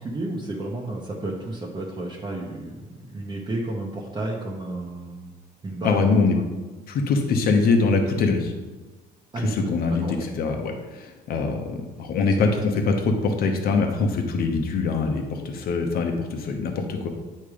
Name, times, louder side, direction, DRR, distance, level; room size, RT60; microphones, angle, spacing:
voice 1, 0.0-5.4 5.6-6.5 9.3-9.7 10.0-10.2 12.4-12.5, right 2 dB, 25° right, -3 dB, 0.9 m, -32 dB
voice 2, 5.8-6.3 6.9-8.5 9.5-17.1, left 4 dB, 65° left, 3 dB, 1.0 m, -23 dB
8.6 x 3.2 x 5.0 m, 1.2 s
cardioid pair, 110°, 17 cm